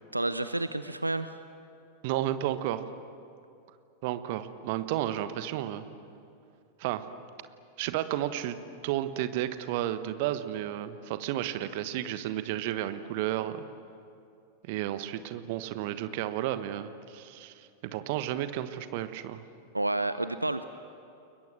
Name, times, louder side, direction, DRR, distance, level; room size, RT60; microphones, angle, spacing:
voice 1, 0.1-1.4 19.7-20.6, right 2 dB, 85° right, 12 dB, 0.7 m, -30 dB
voice 2, 2.0-2.8 4.0-5.8 6.8-7.0 7.8-8.6 8.8-13.7 14.7-19.4, right 13 dB, 50° right, 11 dB, 1.3 m, -32 dB
29.5 x 22.5 x 7.6 m, 2.6 s
figure-of-eight pair, 90°, 0 cm